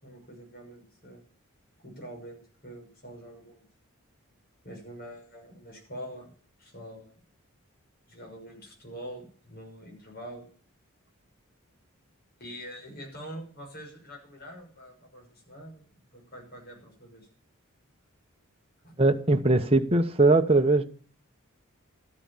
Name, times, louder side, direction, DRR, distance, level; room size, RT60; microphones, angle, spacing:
voice 1, 0.0-1.2 1.8-3.6 4.6-6.3 6.6-7.1 8.1-10.4 12.4-15.9 16.1-17.3 18.8-19.0, equal, 45° left, 6.3 m, -44 dB
voice 2, 19.0-20.8, right 2 dB, 25° right, 1.0 m, -21 dB
13.5 x 11.0 x 7.2 m
head